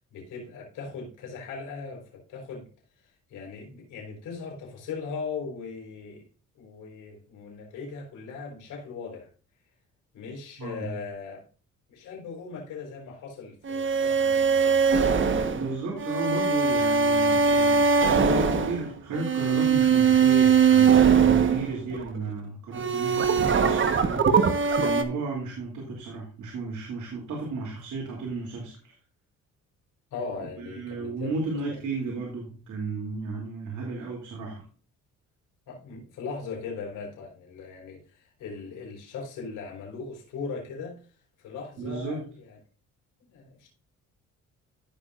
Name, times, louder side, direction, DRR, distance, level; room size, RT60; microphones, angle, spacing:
voice 1, 0.1-2.7 3.3-6.2 6.5-9.3 10.1-11.4 11.9-14.8 30.1-31.3 31.7-31.8 35.7-41.0 41.4-42.6 43.3-43.7, left 5 dB, 90° left, 4.2 m, -39 dB
voice 2, 10.6-10.9 15.5-24.4 24.8-28.9 30.6-34.6 41.8-42.2, right 3 dB, 75° right, 2.8 m, -34 dB
sound 1, 13.7-22.2 22.7-25.0, right 6 dB, 40° right, 1.2 m, -21 dB
15.0 x 6.1 x 2.5 m
cardioid pair, 90°, 30 cm